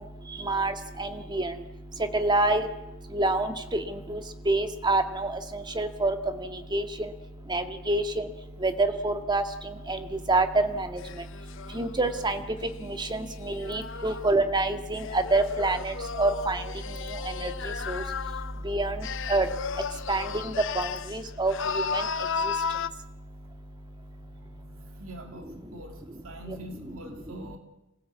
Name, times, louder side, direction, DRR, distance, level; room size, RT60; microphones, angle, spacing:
voice 1, 1.0-1.5 2.1-2.7 3.1-3.5 4.1-4.2 4.5-5.3 5.8-6.2 6.7-6.8 7.5-8.0 8.6-8.7 9.0-9.4 9.9-10.0 10.3-10.5 10.8-10.9 11.8-12.4 13.7-15.0 15.3-15.9 16.2-16.6 17.9-18.0 18.7-19.0 19.3-19.5 20.1-20.2 20.8-20.9 21.1-21.5 21.9-22.0, right 2 dB, 20° right, 7 dB, 1.9 m, -25 dB
sound 1, 11.0-14.3 14.9-18.6 19.0-21.2 21.5-22.9, left 6 dB, 65° left, 0.8 m, -34 dB
voice 2, 25.0-27.6, right 1 dB, 75° right, 5 dB, 2.7 m, -44 dB
26.5 x 16.5 x 8.4 m, 1.0 s
head